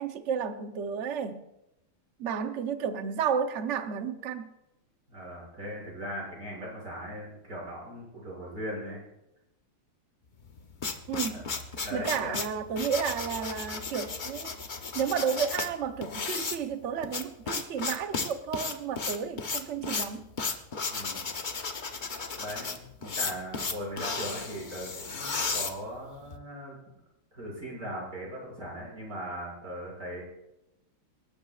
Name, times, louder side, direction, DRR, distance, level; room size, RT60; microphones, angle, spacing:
voice 1, 0.0-1.4 2.2-4.5 11.1-11.5 11.9-14.6 14.9-20.3, right 7 dB, 80° right, 0.6 m, -32 dB
voice 2, 5.1-9.0 11.3-11.4 11.8-12.3 20.9-21.3 22.3-26.8 27.3-30.2, equal, 40° right, 6.6 m, -39 dB
sound 1, 10.4-26.4, left 4 dB, 80° left, 0.4 m, -34 dB
27.5 x 12.5 x 2.4 m
omnidirectional pair, 2.4 m